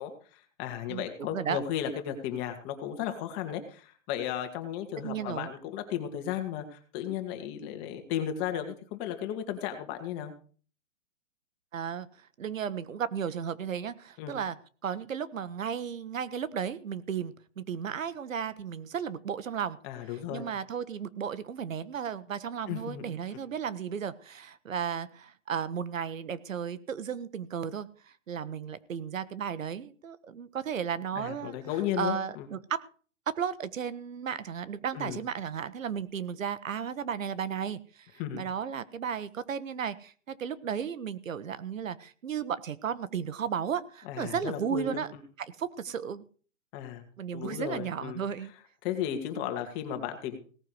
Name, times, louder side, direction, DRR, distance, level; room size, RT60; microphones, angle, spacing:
voice 1, 0.0-10.3 14.2-14.4 19.8-20.5 22.7-23.4 31.1-32.5 34.9-35.2 38.2-38.4 44.1-45.0 46.7-47.0 47.3-48.2 48.8-50.4, left 10 dB, 25° left, 6 dB, 2.2 m, -35 dB
voice 2, 1.3-1.6 5.0-5.5 11.7-12.1 12.4-14.6 14.8-19.8 20.3-31.6 32.0-32.8 33.3-45.1 45.4-46.2 47.2-48.5, right 7 dB, 90° right, 16 dB, 1.4 m, -34 dB
18.0 x 9.5 x 5.0 m, 0.41 s
hypercardioid pair, 160°, 38 cm